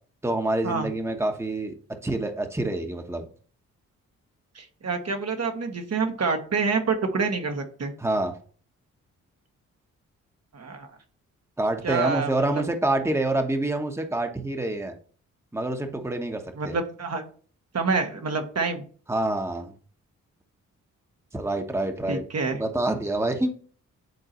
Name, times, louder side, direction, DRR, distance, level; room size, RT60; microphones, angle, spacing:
voice 1, 0.2-1.7 2.0-3.3 8.0-8.3 11.6-14.9 15.5-16.7 19.1-19.7 21.3-22.2 22.5-23.5, right 2 dB, 10° right, 5 dB, 1.1 m, -27 dB
voice 2, 4.5-7.9 10.5-10.9 11.8-12.6 16.6-17.2 17.7-18.8 22.1-22.6, right 4 dB, 50° right, 4 dB, 1.2 m, -27 dB
9.4 x 3.8 x 3.0 m, 0.43 s
supercardioid pair, 50°, 34 cm